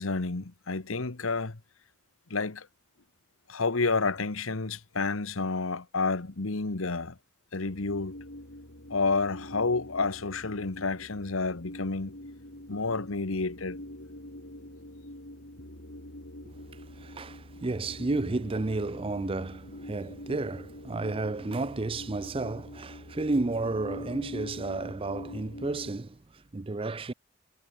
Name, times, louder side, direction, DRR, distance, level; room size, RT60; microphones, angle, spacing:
voice 1, 0.0-1.6 2.3-2.7 3.5-7.2 7.5-8.1 8.9-12.2 12.7-13.8, left 3 dB, 80° left, 1.3 m, -30 dB
sound 1, 7.7-25.9, left 1 dB, 60° left, 5.2 m, -44 dB
voice 2, 16.4-27.1, right 2 dB, 25° right, 0.5 m, -32 dB
head